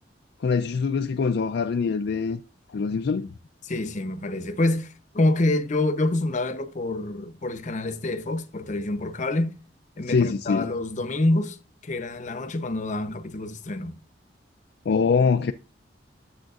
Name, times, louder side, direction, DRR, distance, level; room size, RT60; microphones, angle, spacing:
voice 1, 0.4-2.4 2.7-3.3 10.1-10.7 14.9-15.5, left 5 dB, 60° left, 0.4 m, -23 dB
voice 2, 3.6-9.6 10.0-11.6 11.8-14.0, left 2 dB, 40° left, 0.8 m, -27 dB
10.5 x 7.3 x 2.4 m
head